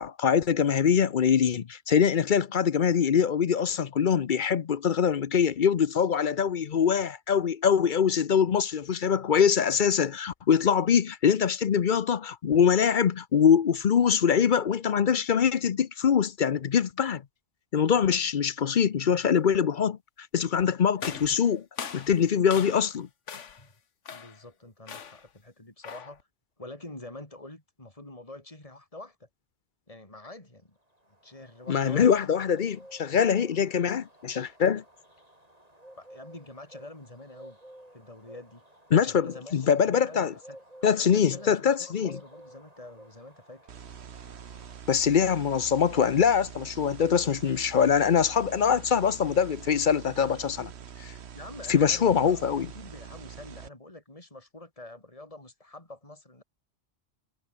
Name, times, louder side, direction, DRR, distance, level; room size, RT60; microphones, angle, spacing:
voice 1, 0.0-17.2 17.7-20.0 20.3-21.6 21.9-23.1 31.7-34.8 38.9-40.3 40.8-42.2 44.9-50.7 51.0-51.1 51.7-52.7, left 7 dB, 50° left, 0.8 m, -23 dB
sound 1, 21.0-23.0 23.3-23.7 24.0-24.4 24.9-25.3 25.8-26.2, left 7 dB, 85° left, 1.6 m, -40 dB
voice 2, 24.1-26.2 26.6-29.3 29.9-30.8 31.2-32.2 36.0-37.6 37.9-38.6 39.0-43.6 51.3-56.4, left 2 dB, 30° left, 4.5 m, -46 dB
sound 2, 30.9-45.5, right 1 dB, 30° right, 7.7 m, -53 dB
sound 3, 43.7-53.7, right 7 dB, 65° right, 1.3 m, -45 dB
omnidirectional pair, 1.2 m